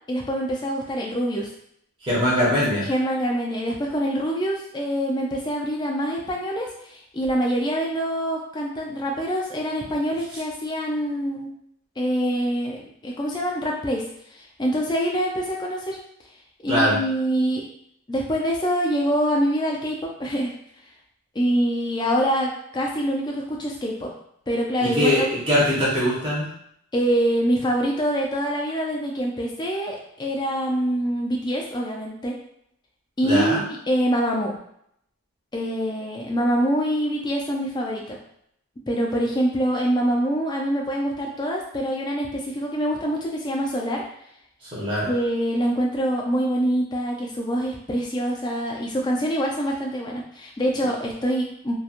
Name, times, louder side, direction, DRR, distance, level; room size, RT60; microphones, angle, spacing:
voice 1, 0.1-1.5 2.8-11.5 12.0-14.0 14.3-16.0 16.6-17.6 18.1-20.5 21.3-24.1 24.5-25.3 26.9-32.3 33.2-34.5 35.5-38.2 38.9-44.0 45.1-51.8, equal, 20° left, -1 dB, 0.4 m, -25 dB
voice 2, 2.0-2.9 16.7-17.0 24.8-26.5 33.2-33.6 44.7-45.1, equal, 25° right, -9 dB, 0.9 m, -21 dB
2.9 x 2.2 x 2.4 m, 0.71 s
head